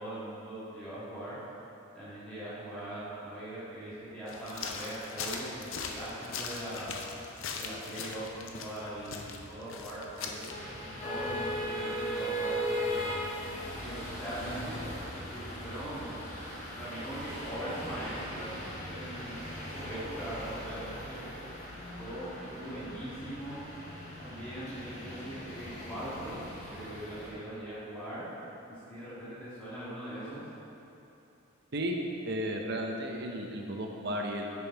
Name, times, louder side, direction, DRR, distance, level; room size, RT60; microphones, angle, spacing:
voice 1, 0.0-1.4 2.0-7.0 7.6-10.4 11.0-13.1 13.7-14.8 15.3-16.2 16.7-21.3 22.0-23.6 24.2-26.4 26.7-28.3 28.7-30.4, right 1 dB, 5° left, -14 dB, 1.8 m, -41 dB
sound 1, 4.3-10.5, left 5 dB, 70° left, 0.6 m, -40 dB
sound 2, 10.5-27.3, equal, 35° left, 1.6 m, -38 dB
voice 2, 32.2-34.6, equal, 50° right, 2 dB, 0.7 m, -34 dB
6.8 x 6.1 x 4.6 m, 2.9 s
head